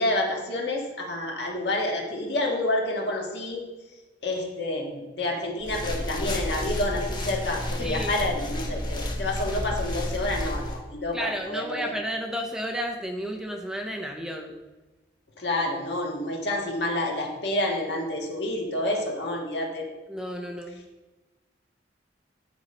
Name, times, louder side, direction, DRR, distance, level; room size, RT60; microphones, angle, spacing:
voice 1, 0.0-3.6 4.2-11.9 15.4-19.9, left 1 dB, 65° left, 0 dB, 1.6 m, -28 dB
sound 1, 5.6-10.8, left 1 dB, 25° left, 1.0 m, -31 dB
voice 2, 7.8-8.2 11.1-14.5 20.1-20.8, equal, 5° right, 2 dB, 0.5 m, -32 dB
9.0 x 5.2 x 4.3 m, 1.2 s
head